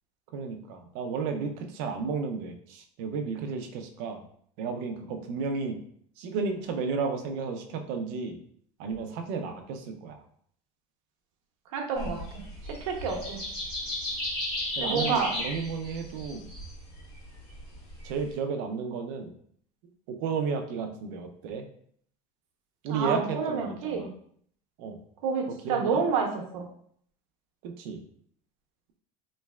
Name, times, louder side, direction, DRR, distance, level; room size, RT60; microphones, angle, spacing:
voice 1, 0.3-4.2 4.6-5.8 6.2-8.3 8.8-10.2 14.8-16.5 18.0-19.3 20.1-21.6 22.8-24.1 24.8-25.0 25.6-26.0 27.6-28.0, right 5 dB, 55° right, 5 dB, 0.5 m, -33 dB
voice 2, 11.7-13.4 14.8-15.3 22.9-24.1 25.2-26.7, right 5 dB, 90° right, 1 dB, 0.9 m, -29 dB
sound 1, 12.0-18.3, left 1 dB, 30° left, 1.4 m, -35 dB
3.9 x 3.1 x 2.3 m, 0.62 s
cardioid pair, 165°, 17 cm